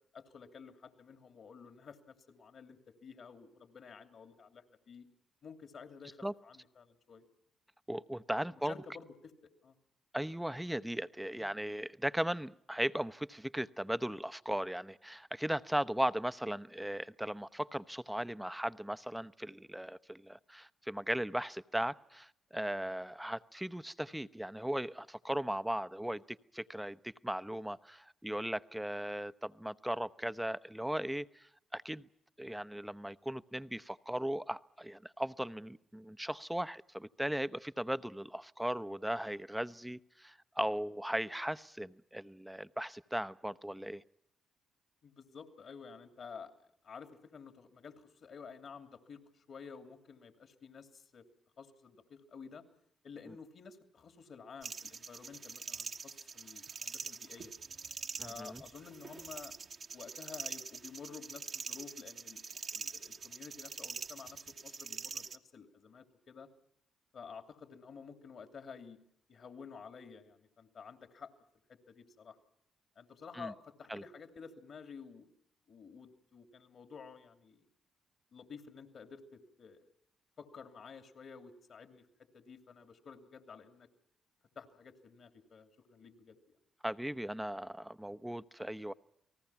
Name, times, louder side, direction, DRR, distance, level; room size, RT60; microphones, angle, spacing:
voice 1, 0.1-5.1 5.4-7.2 8.5-9.7 11.4-11.5 45.0-46.5 46.8-51.2 51.6-52.6 53.0-57.5 58.2-59.5 59.9-66.5 67.1-69.0 69.3-71.3 71.7-72.4 73.0-75.3 75.7-77.7 78.3-79.9 80.4-82.1 82.3-83.9 84.5-86.6, left 5 dB, 60° left, 2.9 m, -52 dB
voice 2, 7.9-8.7 10.1-32.0 32.4-44.0 58.2-58.6 73.3-73.5 73.9-74.0 86.8-88.9, right 1 dB, 5° right, 0.9 m, -37 dB
sound 1, 54.6-65.4, right 5 dB, 50° right, 1.4 m, -44 dB
29.5 x 19.0 x 5.9 m
hypercardioid pair, 45°, 0 cm